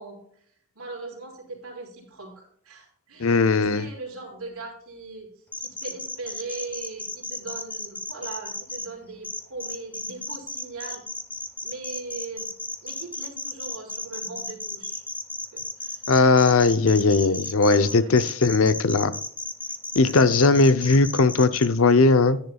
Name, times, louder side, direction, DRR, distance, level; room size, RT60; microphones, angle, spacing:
voice 1, 0.0-11.0 11.6-12.5 12.8-15.1 15.5-16.0 17.7-18.1 19.9-20.2, right 3 dB, 75° right, 3.5 m, -39 dB
voice 2, 3.2-3.9 16.1-19.1 19.9-22.4, left 3 dB, 65° left, 0.6 m, -18 dB
sound 1, 5.5-8.9 9.2-21.7, left 2 dB, 5° left, 0.6 m, -34 dB
10.5 x 9.8 x 2.3 m
head